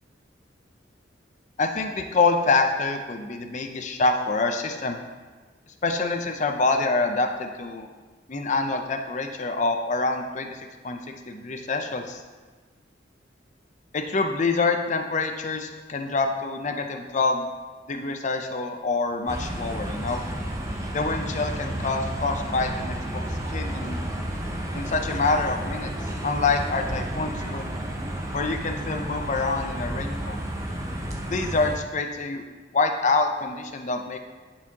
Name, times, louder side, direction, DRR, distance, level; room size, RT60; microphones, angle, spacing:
voice 1, 1.6-5.0 5.8-7.9 8.3-10.6 10.8-12.2 13.9-17.5 17.9-20.2 20.9-23.3 23.5-24.0 24.7-25.9 26.2-27.7 28.3-30.4 31.3-32.4 32.7-34.2, left 3 dB, 40° left, 5 dB, 0.6 m, -26 dB
sound 1, 19.3-31.8, right 1 dB, 15° right, 0.7 m, -31 dB
11.0 x 4.5 x 2.8 m, 1.4 s
head